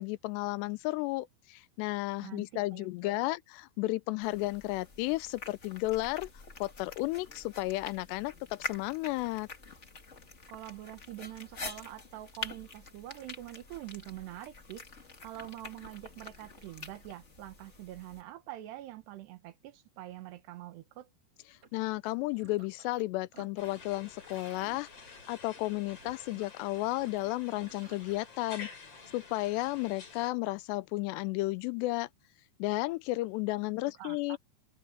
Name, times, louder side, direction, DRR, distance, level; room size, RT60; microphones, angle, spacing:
voice 1, 0.0-6.3 6.6-9.5 21.7-24.9 25.3-28.7 29.1-32.1 32.6-34.4, left 20 dB, 85° left, 2.7 m, -33 dB
voice 2, 2.2-3.4 10.5-14.9 15.2-21.1 34.0-34.4, right 14 dB, 75° right, 3.3 m, -45 dB
sound 1, 4.2-18.2, left 3 dB, 55° left, 0.7 m, -46 dB
sound 2, 21.5-23.0 23.3-28.2, right 6 dB, 40° right, 3.2 m, -57 dB
sound 3, 23.6-30.3, left 5 dB, 35° left, 4.5 m, -50 dB
omnidirectional pair, 5.0 m